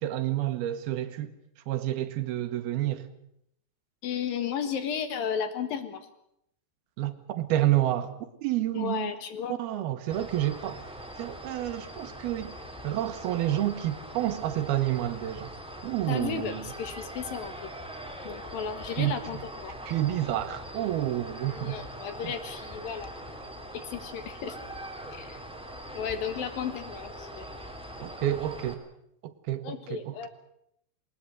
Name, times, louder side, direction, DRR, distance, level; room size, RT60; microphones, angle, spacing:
voice 1, 0.0-1.3 1.7-3.1 7.0-9.1 9.5-10.9 11.2-12.5 12.8-15.5 15.8-16.7 19.0-19.4 19.9-21.8 22.2-22.3 28.0-28.8 29.2-30.3, right 13 dB, 75° right, 2.9 m, -29 dB
voice 2, 4.0-6.1 8.7-9.6 16.1-17.7 18.2-19.7 21.5-23.1 23.7-24.6 25.1-25.4 25.9-27.5 29.6-30.3, left 7 dB, 65° left, 3.1 m, -34 dB
sound 1, 10.1-28.7, equal, ahead, 1.6 m, -42 dB
21.0 x 20.0 x 7.9 m
omnidirectional pair, 4.8 m